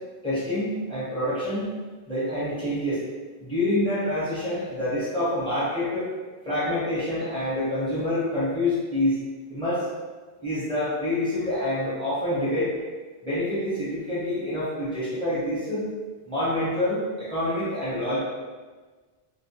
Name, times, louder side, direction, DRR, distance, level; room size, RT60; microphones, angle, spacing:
voice 1, 0.2-1.7 2.1-3.0 3.4-6.1 6.4-9.2 9.5-9.8 10.4-12.7 13.2-15.8 16.2-18.2, left 1 dB, 5° left, -11 dB, 0.9 m, -27 dB
2.3 x 2.1 x 2.8 m, 1.4 s
omnidirectional pair, 1.1 m